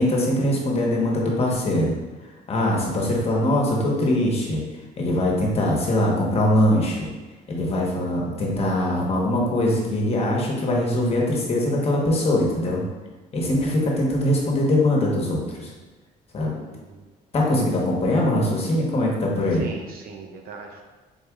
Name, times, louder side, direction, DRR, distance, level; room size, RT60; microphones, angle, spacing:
voice 1, 0.0-2.0 2.5-4.6 5.0-7.1 7.5-12.8 13.3-15.7 16.3-16.6 17.3-19.6, left 1 dB, 35° left, -2 dB, 1.1 m, -22 dB
voice 2, 16.7-17.1 19.6-20.8, right 4 dB, 65° right, 2 dB, 0.7 m, -39 dB
4.1 x 3.4 x 3.5 m, 1.2 s
cardioid pair, 110°, 17 cm